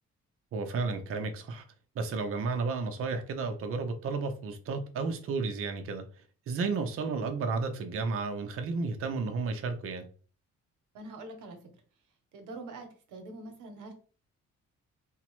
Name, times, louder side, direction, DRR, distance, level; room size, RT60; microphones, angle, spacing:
voice 1, 0.5-1.6 2.0-10.1, right 4 dB, 45° right, 0.5 m, -32 dB
voice 2, 10.9-11.6 12.3-13.9, right 2 dB, 85° right, 0.8 m, -44 dB
3.4 x 2.0 x 3.0 m
cardioid pair, 90°, 30 cm